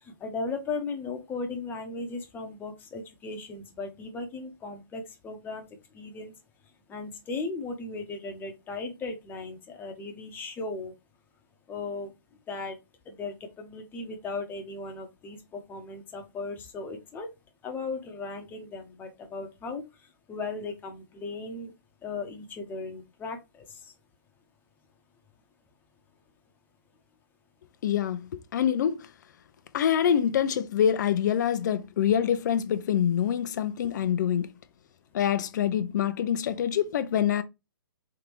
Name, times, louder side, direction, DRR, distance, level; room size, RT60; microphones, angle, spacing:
voice 1, 0.0-5.7 5.9-6.3 6.9-10.9 11.7-12.1 12.5-12.8 13.0-17.3 17.6-19.8 20.3-21.7 22.0-23.9, left 3 dB, 15° left, 1.0 m, -37 dB
voice 2, 27.8-29.1 29.7-34.5 35.1-37.4, left 9 dB, 55° left, 0.7 m, -25 dB
3.7 x 3.5 x 3.1 m
hypercardioid pair, 135°, 11 cm